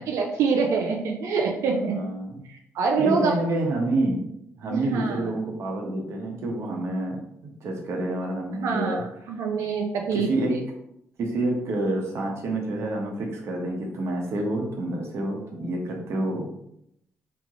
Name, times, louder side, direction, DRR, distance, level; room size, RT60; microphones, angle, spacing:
voice 1, 0.1-2.0 2.5-3.3 4.7-5.2 8.6-10.6, right 5 dB, 80° right, 1 dB, 0.6 m, -25 dB
voice 2, 1.7-2.4 3.0-4.3 4.6-9.3 10.1-10.6 11.2-16.5, right 2 dB, 65° right, 0 dB, 1.1 m, -28 dB
3.4 x 3.2 x 3.7 m, 0.76 s
cardioid pair, 85°, 5 cm